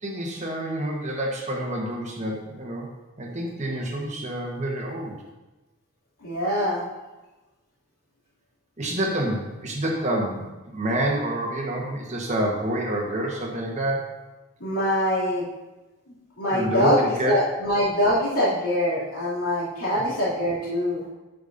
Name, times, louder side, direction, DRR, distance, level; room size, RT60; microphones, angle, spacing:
voice 1, 0.0-2.9 3.2-5.2 8.8-14.2 16.5-17.4 19.9-20.0, right 1 dB, 30° right, -1 dB, 1.2 m, -28 dB
voice 2, 6.2-6.8 14.6-15.4 16.4-17.0 17.2-21.0, left 1 dB, 85° left, -9 dB, 2.6 m, -24 dB
8.4 x 8.4 x 2.6 m, 1.1 s
head